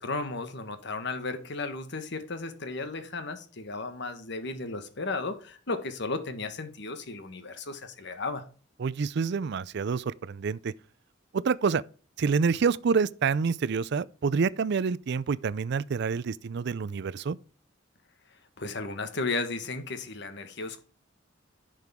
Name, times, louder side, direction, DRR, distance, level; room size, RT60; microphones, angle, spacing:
voice 1, 0.0-8.4 18.6-20.8, left 3 dB, 65° left, 1.5 m, -34 dB
voice 2, 8.8-10.7 11.3-11.8 12.2-17.4, right 5 dB, 60° right, 0.4 m, -27 dB
10.5 x 6.5 x 3.6 m
head